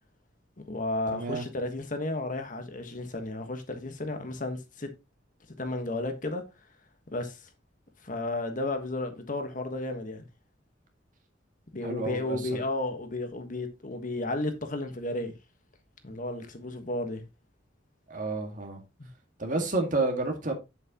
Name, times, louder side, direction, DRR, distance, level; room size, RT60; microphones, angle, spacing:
voice 1, 0.6-4.9 5.5-6.4 7.1-7.5 8.0-10.3 11.7-15.3 16.0-17.2 19.0-19.1, left 2 dB, 45° left, 1.4 m, -33 dB
voice 2, 1.1-1.4 11.8-12.6 18.1-18.8 19.4-20.5, right 3 dB, 45° right, 2.0 m, -30 dB
8.3 x 7.5 x 3.0 m
head